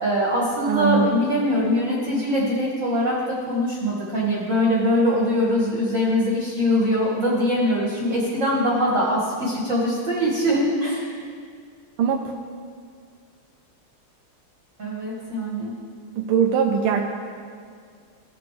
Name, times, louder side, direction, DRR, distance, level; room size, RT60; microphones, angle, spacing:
voice 1, 0.0-3.2 3.5-11.1 14.8-15.7, equal, 40° right, -5 dB, 1.7 m, -22 dB
voice 2, 0.7-1.3 12.0-12.3 16.2-17.0, right 7 dB, 80° right, 1 dB, 1.5 m, -21 dB
16.5 x 6.1 x 3.2 m, 2.1 s
omnidirectional pair, 2.4 m